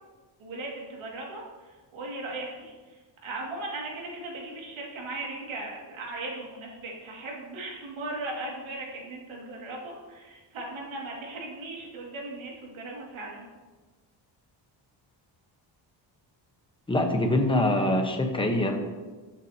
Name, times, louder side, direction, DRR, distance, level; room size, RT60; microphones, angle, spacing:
voice 1, 0.4-2.7 3.2-13.5, right 2 dB, 80° right, -2 dB, 2.4 m, -38 dB
voice 2, 16.9-18.8, left 1 dB, 10° left, 3 dB, 1.0 m, -24 dB
15.0 x 7.2 x 2.9 m, 1.3 s
cardioid pair, 145°, 46 cm